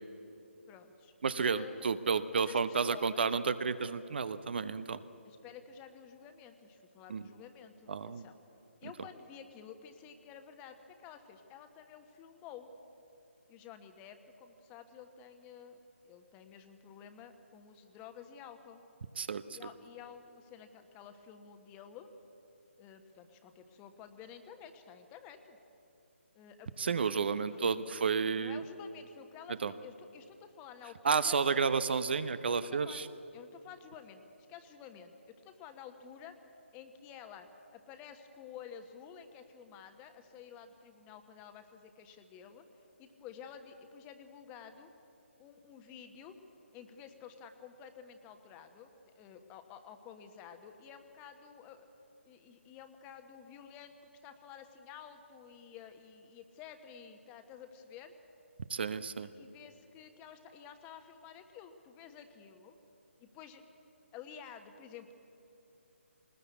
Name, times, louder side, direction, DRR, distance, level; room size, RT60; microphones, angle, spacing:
voice 1, 0.7-2.0 2.3-3.4 5.2-8.4 8.8-12.7 13.5-18.8 19.5-22.1 22.8-25.6 26.3-27.6 28.4-32.0 32.5-33.0 33.3-34.2 34.5-36.4 36.7-42.6 43.0-44.9 45.4-46.4 46.7-51.9 52.2-54.0 54.2-58.1 59.1-62.8 63.2-63.6 64.1-65.1, left 8 dB, 15° left, 8 dB, 1.2 m, -51 dB
voice 2, 1.2-5.0 7.1-7.2 7.9-8.2 19.2-19.6 26.8-28.6 29.6-29.7 31.0-33.1 58.7-59.3, right 5 dB, 50° right, 14 dB, 0.9 m, -31 dB
21.0 x 19.5 x 8.4 m, 2.9 s
figure-of-eight pair, 145°, 7 cm